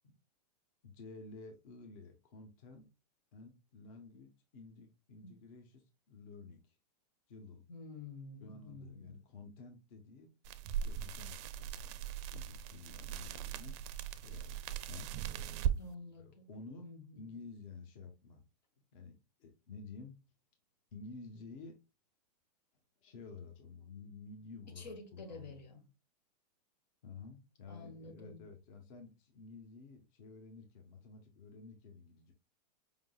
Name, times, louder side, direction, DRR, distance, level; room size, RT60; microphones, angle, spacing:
voice 1, 0.8-2.9 3.3-6.8 7.3-7.6 8.4-10.3 10.8-13.8 14.2-15.1 16.2-18.4 18.9-20.1 20.9-21.8 23.0-25.6 27.0-32.3, left 4 dB, 55° left, 1.1 m, -52 dB
voice 2, 7.7-9.2 15.7-16.5 16.8-17.3 24.7-25.8 27.7-28.4, left 3 dB, 85° left, 1.6 m, -50 dB
sound 1, 10.4-15.8, right 10 dB, 40° right, 0.4 m, -39 dB
4.8 x 3.6 x 2.3 m
hypercardioid pair, 140°, 21 cm